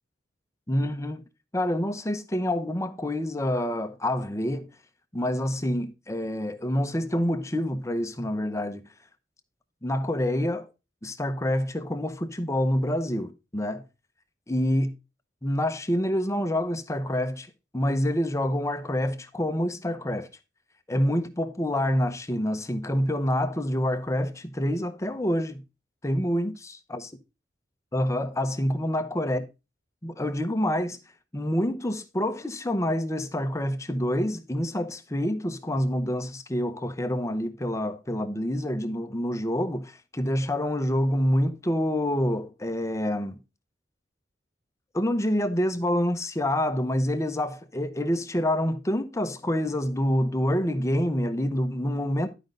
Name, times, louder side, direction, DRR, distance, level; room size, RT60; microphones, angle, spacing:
voice 1, 0.7-1.2 1.5-4.7 5.1-8.8 9.8-10.7 11.0-13.8 14.5-14.9 15.4-17.5 17.7-20.3 20.9-25.6 26.0-26.6 26.9-27.0 27.9-29.4 30.0-31.0 31.3-43.4 44.9-52.3, equal, 15° left, 0.8 m, -27 dB
11.0 x 5.3 x 3.8 m
head